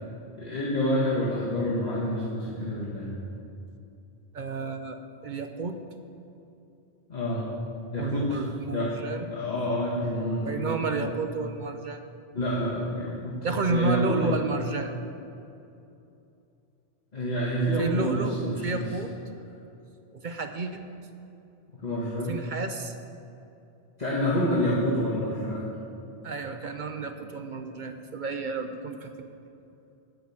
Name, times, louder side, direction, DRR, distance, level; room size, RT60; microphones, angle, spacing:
voice 1, 0.4-3.1 7.1-7.4 7.9-8.4 8.7-9.0 9.2-11.2 12.3-13.4 13.7-14.3 17.1-18.9 21.7-22.4 24.0-25.8, equal, 40° left, -8 dB, 1.7 m, -28 dB
voice 2, 4.3-5.8 8.0-9.3 10.4-12.0 13.4-15.0 17.8-19.1 20.1-20.9 22.3-22.9 26.2-29.3, right 4 dB, 55° right, 7 dB, 0.6 m, -31 dB
10.0 x 6.0 x 8.5 m, 2.7 s
omnidirectional pair, 1.1 m